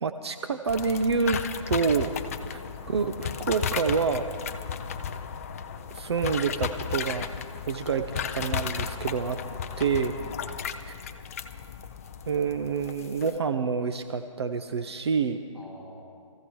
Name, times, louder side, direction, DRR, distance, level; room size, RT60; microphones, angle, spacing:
voice 1, 0.0-1.4 1.7-2.2 2.5-4.3 5.9-7.3 7.7-9.4 9.8-10.1 10.9-11.0 12.3-15.4, right 5 dB, 50° right, 8 dB, 0.7 m, -27 dB
sound 1, 0.7-13.4, left 7 dB, 25° left, 0.5 m, -34 dB
voice 2, 4.5-5.0 9.5-9.6 10.2-10.6 15.5-16.0, left 1 dB, 5° right, -5 dB, 2.0 m, -49 dB
25.0 x 15.0 x 3.1 m, 2.2 s
figure-of-eight pair, 155°, 17 cm